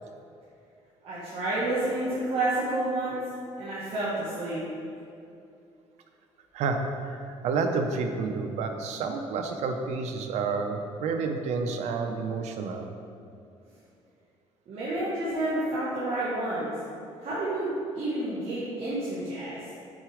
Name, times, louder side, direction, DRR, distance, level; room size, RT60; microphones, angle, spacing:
voice 1, 1.0-3.2 3.6-4.6 14.7-16.7 17.2-19.6, right 1 dB, 60° right, -9 dB, 1.6 m, -29 dB
voice 2, 6.5-12.9, right 4 dB, 80° right, 5 dB, 0.7 m, -30 dB
6.3 x 4.7 x 4.9 m, 2.6 s
cardioid pair, 120°, 11 cm